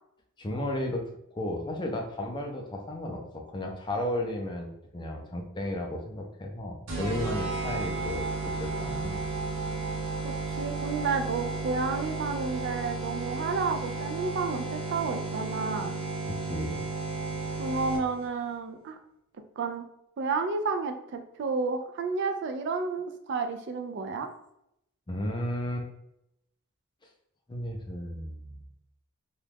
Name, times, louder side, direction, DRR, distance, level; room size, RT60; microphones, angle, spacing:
voice 1, 0.4-9.2 16.3-16.9 25.1-25.9 27.5-28.6, left 1 dB, 20° left, 2 dB, 0.4 m, -34 dB
sound 1, 6.9-18.3, right 3 dB, 75° right, 0.8 m, -33 dB
voice 2, 10.2-15.9 17.6-19.0 19.6-19.9 20.2-24.3, right 4 dB, 55° right, 6 dB, 0.3 m, -31 dB
2.9 x 2.3 x 3.4 m, 0.81 s
head